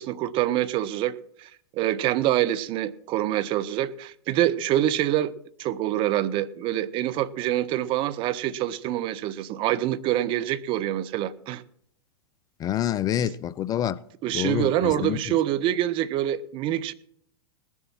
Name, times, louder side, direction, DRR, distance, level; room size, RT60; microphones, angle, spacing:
voice 1, 0.0-5.3 5.6-11.6 13.2-13.3 14.2-16.9, right 13 dB, 40° right, 0.7 m, -26 dB
voice 2, 12.6-14.0 14.3-15.2, left 11 dB, 25° left, 0.4 m, -27 dB
19.0 x 7.2 x 5.9 m
figure-of-eight pair, 95°, 14 cm